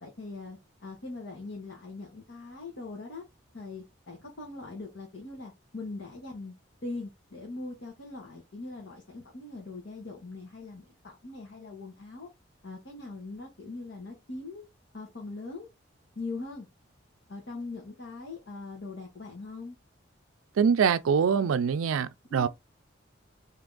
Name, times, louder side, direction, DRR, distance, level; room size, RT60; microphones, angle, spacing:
voice 1, 0.0-3.2 3.5-6.5 6.8-12.3 12.6-14.6 14.9-15.7 16.1-16.7 17.3-19.8 22.3-22.5, left 3 dB, 65° left, 1.1 m, -41 dB
voice 2, 20.6-22.5, right 6 dB, 90° right, 0.4 m, -24 dB
3.4 x 2.8 x 3.8 m
head